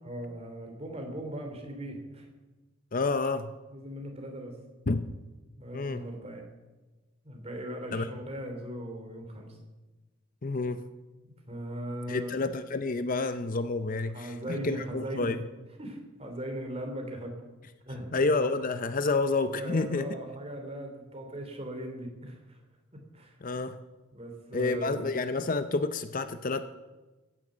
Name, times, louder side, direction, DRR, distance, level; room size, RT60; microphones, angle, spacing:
voice 1, 0.0-2.3 3.7-4.6 5.6-6.4 7.2-9.6 11.2-12.3 14.1-15.5 15.8-17.4 17.9-18.1 19.5-22.6 22.9-23.3 24.1-25.0, right 1 dB, 30° right, 3 dB, 3.0 m, -39 dB
voice 2, 2.9-3.5 4.9-5.1 5.7-6.1 7.9-8.1 10.4-10.8 12.1-15.4 18.1-20.1 23.4-23.8 24.5-26.7, left 3 dB, 40° left, 11 dB, 0.6 m, -29 dB
15.5 x 10.0 x 7.4 m, 1.2 s
head